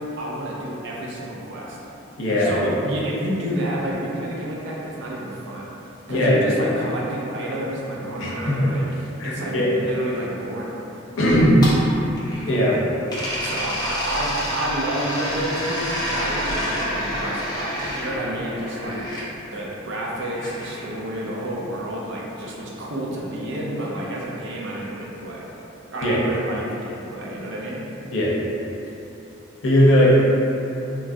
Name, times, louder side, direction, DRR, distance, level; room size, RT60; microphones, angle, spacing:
voice 1, 0.0-1.8 2.4-5.7 6.1-10.7 13.4-19.0 19.5-25.5 25.9-27.8, right 1 dB, 65° right, -4 dB, 0.5 m, -29 dB
voice 2, 2.2-2.5 6.1-6.5 8.2-8.7 9.2-9.7 11.2-11.6 12.5-12.8 26.0-26.2 28.1-28.3 29.6-30.1, equal, 70° left, -6 dB, 0.6 m, -18 dB
sound 1, 11.3-12.7 13.1-19.3 20.3-21.5, equal, 20° left, 0.5 m, -29 dB
3.1 x 2.3 x 2.5 m, 2.9 s
head